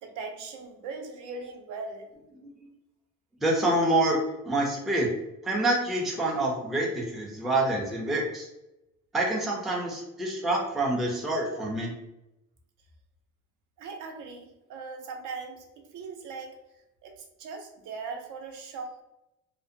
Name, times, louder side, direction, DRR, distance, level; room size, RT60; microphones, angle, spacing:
voice 1, 0.0-2.1 13.8-16.6 17.0-19.0, right 4 dB, 70° right, 3 dB, 0.5 m, -39 dB
voice 2, 2.4-2.7 3.4-4.2 4.5-5.1 5.4-8.5 9.1-11.9, right 1 dB, ahead, -2 dB, 0.3 m, -27 dB
2.6 x 2.1 x 2.5 m, 0.91 s
cardioid pair, 155°, 31 cm